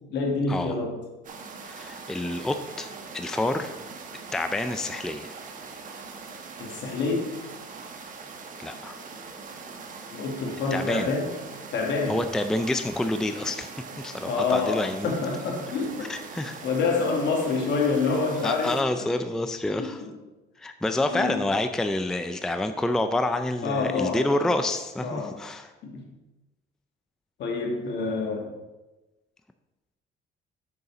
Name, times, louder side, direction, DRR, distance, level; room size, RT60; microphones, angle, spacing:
voice 1, 0.1-1.0 6.6-7.3 10.1-11.3 11.7-12.2 14.2-16.1 16.6-18.8 19.8-20.1 21.1-21.4 23.6-24.5 25.0-25.4 25.8-26.1 27.4-28.5, left 4 dB, 70° left, 1 dB, 1.9 m, -27 dB
sound 1, 1.2-18.8, right 4 dB, 45° right, 1.2 m, -42 dB
voice 2, 1.6-3.7 4.3-5.4 8.6-9.0 10.7-11.1 12.1-13.7 14.0-15.1 16.1-16.6 18.4-20.0 20.6-25.7, left 2 dB, 5° left, 8 dB, 0.4 m, -28 dB
6.9 x 6.7 x 5.0 m, 1.1 s
cardioid pair, 140°, 19 cm